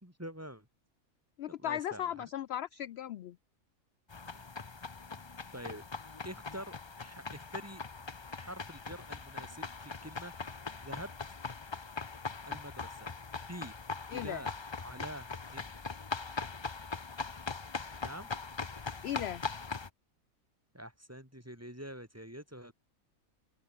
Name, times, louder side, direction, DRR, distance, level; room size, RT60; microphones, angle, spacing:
voice 1, 0.0-0.7 1.6-2.3 4.2-4.5 5.5-5.8 6.2-7.8 8.3-10.3 10.7-11.1 12.5-13.2 13.5-13.7 14.1-15.7 18.0-18.3 20.7-22.7, equal, 10° right, 4.5 m, -46 dB
voice 2, 1.4-3.4 14.1-14.4 19.0-19.4, left 11 dB, 65° left, 0.7 m, -37 dB
sound 1, 4.1-19.9, left 4 dB, 25° left, 0.6 m, -41 dB
open air
omnidirectional pair, 1.5 m